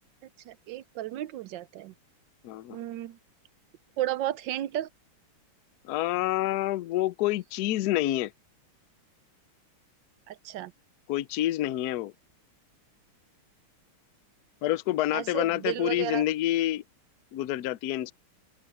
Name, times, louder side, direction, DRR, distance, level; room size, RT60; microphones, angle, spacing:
voice 1, 0.5-1.9 2.7-3.2 4.0-4.9 10.3-10.7 15.1-16.2, right 13 dB, 70° right, 1.2 m, -33 dB
voice 2, 2.4-2.8 5.9-8.3 11.1-12.1 14.6-16.8 17.3-18.1, left 14 dB, 80° left, 0.8 m, -28 dB
open air
omnidirectional pair, 2.4 m